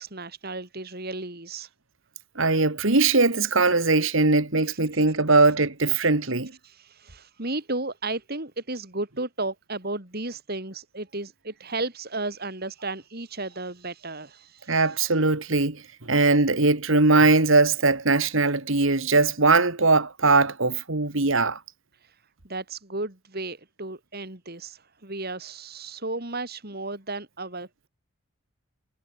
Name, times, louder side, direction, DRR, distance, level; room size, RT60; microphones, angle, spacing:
voice 1, 0.0-1.7 4.7-5.0 6.0-6.1 6.6-15.0 22.0-22.2 22.5-27.9, right 2 dB, 45° right, 3.4 m, -34 dB
voice 2, 2.4-6.5 14.7-21.6, right 3 dB, 60° right, 2.0 m, -21 dB
head